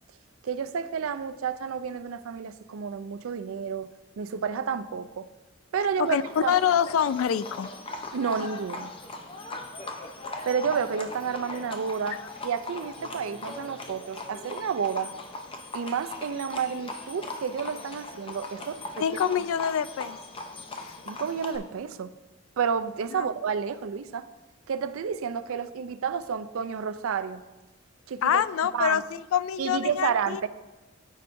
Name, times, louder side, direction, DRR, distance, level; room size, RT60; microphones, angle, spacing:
voice 1, 0.4-3.9 4.2-5.3 5.7-6.5 8.1-8.9 10.4-15.1 15.7-19.0 21.1-22.1 22.6-24.3 24.7-27.4 28.1-28.4 28.7-29.0 29.6-30.5, right 6 dB, 80° right, 12 dB, 0.4 m, -30 dB
voice 2, 6.0-7.7 19.0-20.2 20.8-20.9 23.1-23.3 28.2-30.4, left 8 dB, 80° left, 16 dB, 0.3 m, -26 dB
Livestock farm animals working animals, 6.0-21.6, left 2 dB, 25° left, 0.6 m, -39 dB
13.5 x 4.8 x 2.6 m, 1.1 s
head